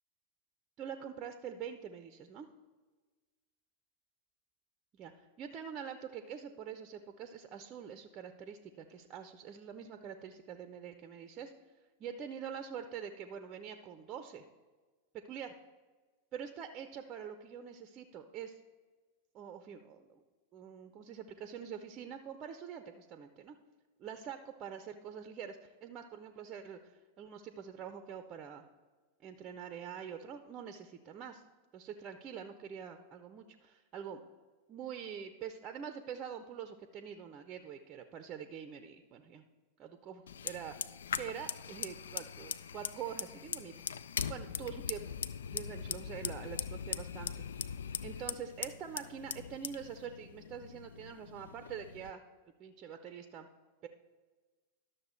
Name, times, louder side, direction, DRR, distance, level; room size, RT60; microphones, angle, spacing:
voice 1, 0.8-2.5 5.0-11.5 12.0-14.4 15.3-15.5 16.3-18.6 19.3-20.2 20.5-23.6 24.0-28.7 29.2-31.4 31.7-34.2 34.7-39.4 39.8-40.8 41.1-43.7 44.3-45.2 45.5-47.3 47.7-52.2 52.6-53.5 53.8-53.9, right 8 dB, 30° right, 9 dB, 0.6 m, -45 dB
Fire, 40.3-52.1, left 7 dB, 65° left, 0.3 m, -41 dB
11.5 x 6.6 x 4.4 m, 1.3 s
figure-of-eight pair, 90°, 0 cm